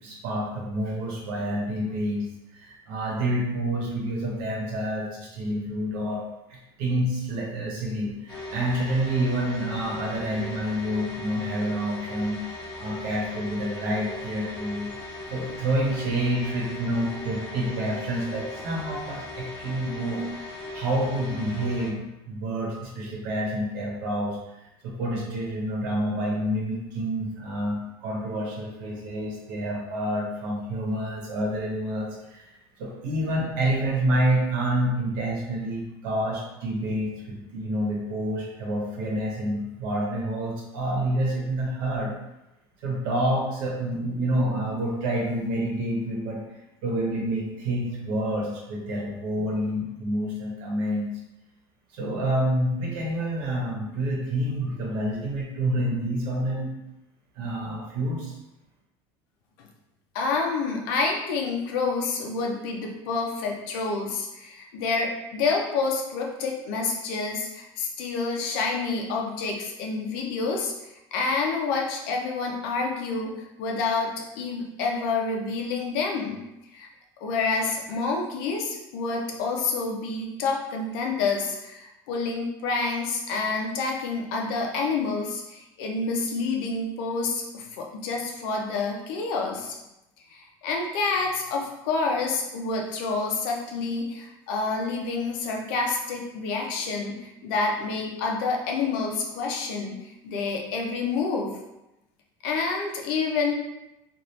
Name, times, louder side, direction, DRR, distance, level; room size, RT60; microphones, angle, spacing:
voice 1, 0.0-2.3 2.5-6.2 6.5-12.4 12.8-14.9 15.3-20.5 20.7-24.4 24.8-32.5 32.8-42.1 42.8-46.4 46.8-51.1 51.9-56.7 57.3-58.3, right 1 dB, 70° right, -2 dB, 1.0 m, -28 dB
sound 1, 8.3-21.9, left 2 dB, 35° left, 1.0 m, -38 dB
voice 2, 60.1-70.7 71.1-76.4 76.7-76.9 77.2-89.7 90.3-101.5 102.4-103.5, left 4 dB, 70° left, 0 dB, 0.7 m, -28 dB
3.2 x 2.6 x 2.7 m, 0.92 s
cardioid pair, 170°, 12 cm